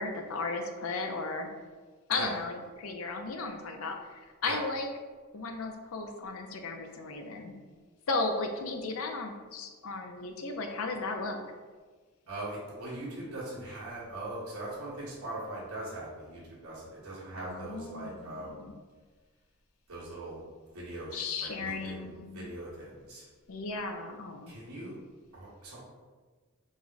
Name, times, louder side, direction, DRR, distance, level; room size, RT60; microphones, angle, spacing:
voice 1, 0.0-1.5 2.1-4.9 5.3-7.5 8.1-11.4 17.3-18.7 21.1-22.5 23.5-24.5, left 3 dB, 70° left, 4 dB, 0.5 m, -35 dB
voice 2, 12.3-18.7 19.9-20.4 20.7-23.2 24.5-25.0 25.3-25.8, right 2 dB, 90° right, -8 dB, 1.5 m, -41 dB
4.8 x 2.2 x 4.0 m, 1.4 s
head